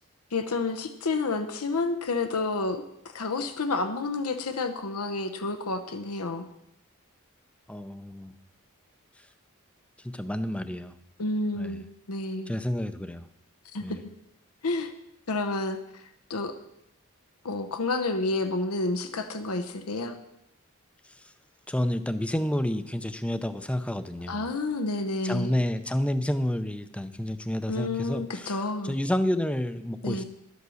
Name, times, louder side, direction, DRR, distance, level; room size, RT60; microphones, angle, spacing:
voice 1, 0.3-6.5 11.2-12.5 13.7-14.0 14.6-14.9 15.3-16.5 17.4-20.2 24.3-25.5 27.7-29.0 30.0-30.2, left 3 dB, 85° left, 7 dB, 0.9 m, -30 dB
voice 2, 7.7-8.3 10.0-11.0 11.6-11.8 12.5-13.3 13.8-14.0 21.7-24.5 25.2-28.6 28.8-30.2, left 1 dB, 5° left, 11 dB, 0.5 m, -29 dB
12.0 x 8.2 x 6.4 m, 0.81 s
head